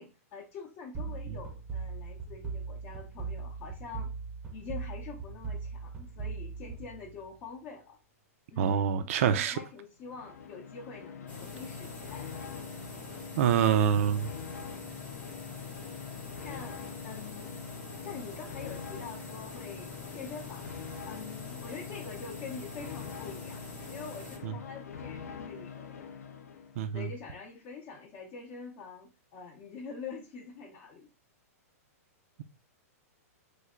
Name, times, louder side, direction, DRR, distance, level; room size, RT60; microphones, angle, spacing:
voice 1, 0.0-4.1 4.5-8.0 8.5-12.4 13.5-13.8 16.4-17.6 18.0-20.7 21.1-23.6 23.9-26.2 26.9-31.1, left 5 dB, 35° left, 0.6 m, -45 dB
sound 1, 0.9-7.6, right 5 dB, 15° right, 0.6 m, -39 dB
voice 2, 8.6-9.6 13.4-14.3 24.4-24.5 26.8-27.1, right 8 dB, 60° right, 0.4 m, -26 dB
sound 2, 10.0-26.9, left 7 dB, 80° left, 0.5 m, -44 dB
sound 3, 11.3-24.4, left 2 dB, 15° left, 0.9 m, -46 dB
3.2 x 2.1 x 3.5 m
hypercardioid pair, 140°, 8 cm